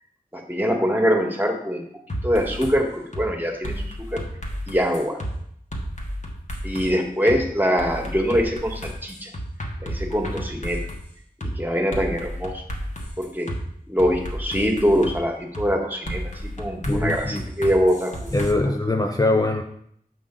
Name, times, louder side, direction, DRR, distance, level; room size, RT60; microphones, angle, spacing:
voice 1, 0.3-1.8 2.2-4.2 4.7-5.2 6.6-9.3 9.8-10.8 11.4-12.6 13.2-13.5 13.9-18.3, equal, 10° right, 2 dB, 1.6 m, -23 dB
sound 1, 2.1-2.7 3.1-3.3 3.6-5.3 5.7-6.9 7.3-7.4 7.8-11.0 11.4-11.5 11.9-13.6 14.0-15.2 15.5-15.7 16.1-18.5, equal, 50° left, 1.4 m, -32 dB
voice 2, 16.9-17.4 18.3-19.6, left 2 dB, 25° left, 3 dB, 0.6 m, -22 dB
7.3 x 5.5 x 3.8 m, 0.70 s
wide cardioid pair, 45°, 16 cm